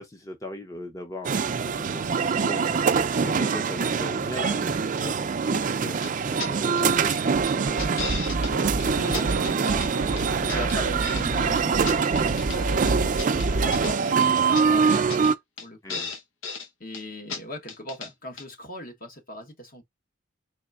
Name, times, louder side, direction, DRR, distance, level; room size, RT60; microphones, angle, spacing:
voice 1, 0.0-7.1 15.8-16.1, left 1 dB, 15° left, 0.6 m, -39 dB
sound 1, 1.2-15.3, right 5 dB, 45° right, 0.4 m, -24 dB
sound 2, 6.0-6.1 6.4-6.5 6.8-7.2 7.5-8.5 8.8-8.9 9.1-9.9 10.2-11.2 11.5-12.6 12.9-13.9 14.2-14.3 14.5-14.6 14.9-15.3 15.6-15.7 15.9-16.7 16.9-17.0 17.3-17.4 17.7-18.1 18.4-18.5, left 5 dB, 85° left, 0.8 m, -35 dB
sound 3, 7.3-14.0, right 2 dB, 80° right, 0.6 m, -30 dB
voice 2, 8.4-15.1 15.6-16.0 16.8-19.8, equal, 50° left, 1.2 m, -39 dB
4.1 x 3.2 x 2.4 m
head